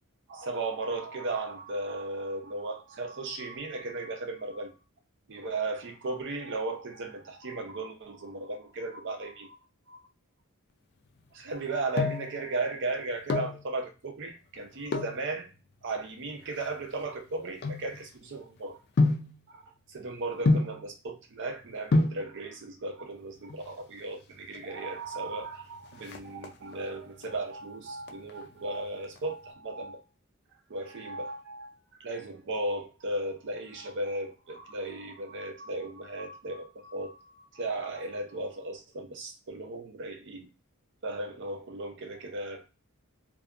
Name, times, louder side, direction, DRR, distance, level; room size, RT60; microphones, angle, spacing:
voice 1, 0.3-4.7 5.3-9.6 9.9-10.0 11.3-15.5 15.8-18.8 19.5-19.6 19.9-30.0 30.7-40.5 41.0-42.7, right 2 dB, 55° right, 0.6 m, -36 dB
sound 1, 11.5-12.4 13.1-13.6 14.9-15.2 16.0-18.4 19.0-19.4 20.5-20.9 21.6-21.7 21.9-22.3 23.4-23.9 24.2-24.3 24.5-24.7 25.1-25.5 25.8-26.8 27.2-27.7 28.0-29.2 29.5-29.6, left 2 dB, 50° left, 0.4 m, -28 dB
2.6 x 2.4 x 2.4 m
head